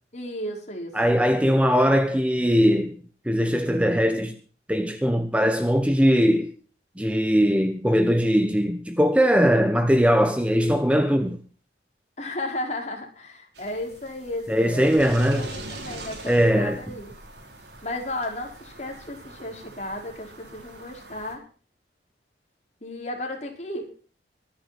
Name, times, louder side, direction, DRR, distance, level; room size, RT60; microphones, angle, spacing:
voice 1, 0.1-0.9 12.2-17.1 17.8-21.4 22.8-23.9, left 1 dB, 40° left, 5.0 m, -34 dB
voice 2, 0.9-4.4 4.7-6.5 7.0-11.4 14.5-15.5 16.3-16.8, equal, 5° right, 1.0 m, -20 dB
sound 1, 13.5-21.3, right 2 dB, 70° right, 5.3 m, -42 dB
24.0 x 10.0 x 4.3 m
head